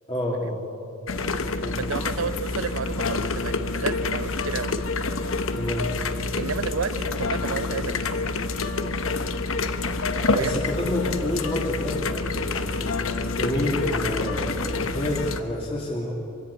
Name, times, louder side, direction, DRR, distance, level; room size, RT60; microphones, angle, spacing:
voice 1, 0.1-0.6 1.6-1.8 5.5-5.9 10.3-16.1, left 1 dB, 30° left, -4 dB, 2.8 m, -29 dB
sound 1, 1.1-15.4, left 3 dB, 80° left, 1.1 m, -27 dB
voice 2, 1.8-4.7 6.4-8.1 10.3-10.6, right 5 dB, 85° right, 16 dB, 0.6 m, -31 dB
24.5 x 16.5 x 8.4 m, 2.7 s
head